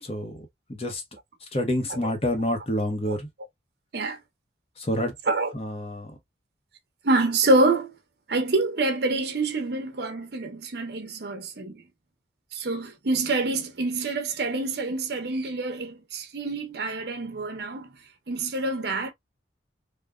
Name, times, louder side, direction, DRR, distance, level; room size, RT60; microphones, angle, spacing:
voice 1, 0.0-1.0 1.5-3.3 4.8-5.1 5.5-6.1, left 1 dB, 30° left, 0.8 m, -28 dB
voice 2, 7.0-7.9 8.3-11.8 12.5-17.9 18.3-19.1, right 2 dB, 60° right, 0.7 m, -26 dB
3.4 x 2.1 x 2.3 m
head